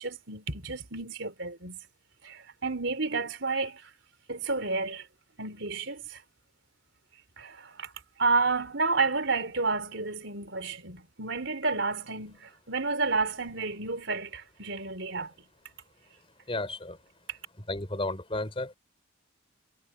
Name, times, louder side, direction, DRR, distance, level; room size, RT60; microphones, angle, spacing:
voice 1, 0.0-1.8 2.2-3.9 4.3-5.1 5.4-6.2 7.4-7.9 8.2-15.3 17.3-17.4, right 3 dB, 70° right, 4.2 m, -31 dB
voice 2, 16.5-17.0 17.7-18.8, left 2 dB, 30° left, 3.8 m, -33 dB
head